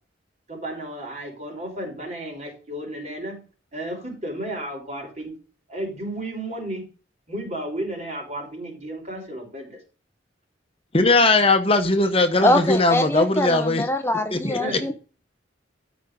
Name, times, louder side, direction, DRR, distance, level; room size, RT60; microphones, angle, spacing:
voice 1, 0.5-3.4 3.7-5.3 5.7-6.8 7.3-9.8 14.6-14.9, right 1 dB, 40° right, 5.2 m, -33 dB
voice 2, 10.9-13.8 14.3-14.8, left 2 dB, 30° left, 1.0 m, -19 dB
voice 3, 12.4-14.9, left 1 dB, 15° left, 0.7 m, -23 dB
13.0 x 5.1 x 5.2 m
head